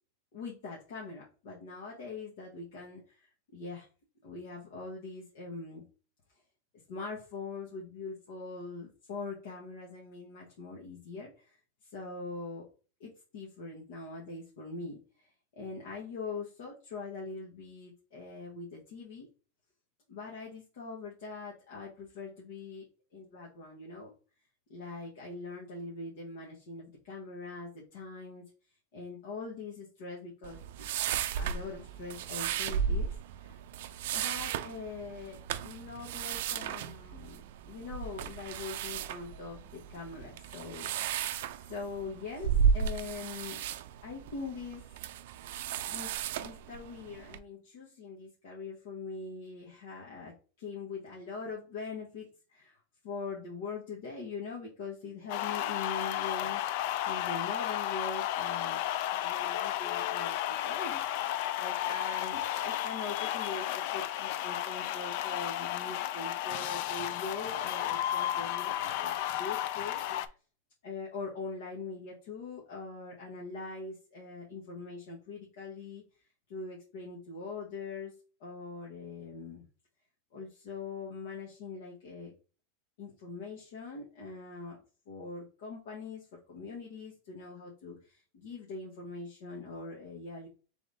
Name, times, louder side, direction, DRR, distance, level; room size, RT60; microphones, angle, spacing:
voice 1, 0.3-3.9 4.2-5.8 6.9-12.7 13.0-15.3 15.5-19.3 20.1-22.9 23.1-24.1 24.7-28.5 28.9-30.9 31.3-33.6 34.1-40.9 41.7-43.6 44.0-44.8 45.4-45.6 45.9-52.8 53.0-58.8 59.2-61.0 61.6-70.0 70.3-70.4 70.8-76.0 76.5-78.1 78.4-79.6 80.3-82.3 83.0-90.5, left 4 dB, 65° left, -3 dB, 1.4 m, -42 dB
sound 1, 30.4-47.4, right 7 dB, 60° right, 0.4 m, -34 dB
sound 2, 55.3-70.3, left 12 dB, 50° left, 0.3 m, -33 dB
4.0 x 3.5 x 3.4 m, 0.36 s
supercardioid pair, 170°, 0 cm